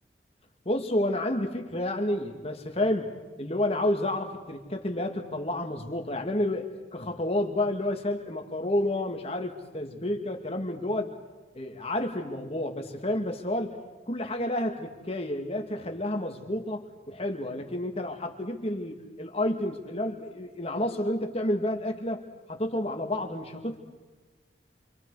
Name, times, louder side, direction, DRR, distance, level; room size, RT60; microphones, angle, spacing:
voice 1, 0.7-3.1 3.4-6.7 6.9-11.1 11.5-13.8 14.1-16.8 17.1-22.3 22.6-23.8, left 1 dB, 35° left, 3 dB, 2.0 m, -30 dB
28.0 x 25.5 x 4.9 m, 1.3 s
head